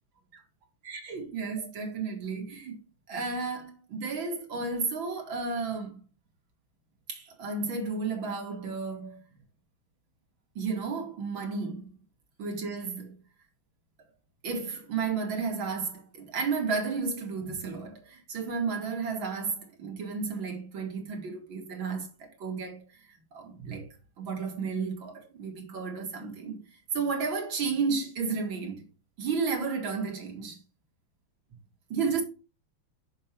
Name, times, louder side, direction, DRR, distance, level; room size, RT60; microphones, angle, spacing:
voice 1, 0.9-2.8 3.1-6.0 7.1-9.2 10.6-11.9 12.4-13.2 14.4-23.9 24.2-26.6 26.9-28.8 29.2-30.6 31.9-32.2, right 4 dB, 70° right, 2.5 m, -32 dB
6.5 x 6.3 x 4.4 m
omnidirectional pair, 2.2 m